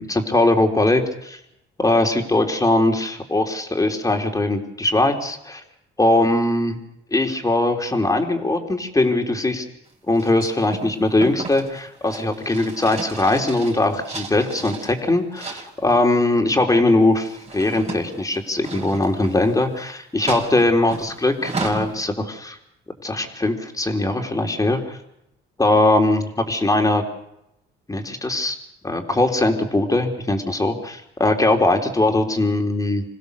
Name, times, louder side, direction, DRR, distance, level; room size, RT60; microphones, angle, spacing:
voice 1, 0.0-1.4 1.8-5.6 6.0-6.8 7.1-9.6 10.1-22.6 23.0-25.0 25.6-27.0 27.9-28.6 28.8-33.0, left 2 dB, 15° left, 3 dB, 3.5 m, -20 dB
sound 1, 10.2-14.9 15.4-16.0 17.0-19.8 20.3-21.9, right 3 dB, 30° right, 5.0 m, -34 dB
27.0 x 16.5 x 6.8 m, 0.82 s
cardioid pair, 90°, 20 cm